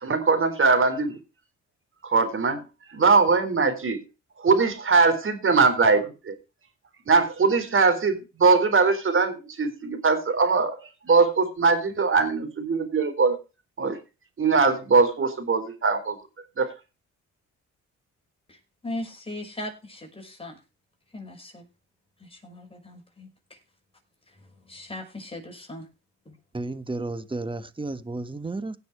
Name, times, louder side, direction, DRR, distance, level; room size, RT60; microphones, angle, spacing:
voice 1, 0.0-1.2 2.0-2.6 2.9-4.0 4.4-6.3 7.1-10.8 11.0-13.4 13.8-14.0 14.4-16.2 16.6-16.7, right 4 dB, 45° right, 9 dB, 4.1 m, -21 dB
voice 2, 18.5-20.6 21.1-21.7 22.2-23.6 24.4-25.9 26.3-26.4, left 1 dB, 20° left, 2 dB, 6.0 m, -39 dB
voice 3, 26.5-28.7, right 2 dB, 15° right, 13 dB, 1.5 m, -32 dB
17.0 x 6.9 x 4.8 m, 0.30 s
cardioid pair, 90°, 30 cm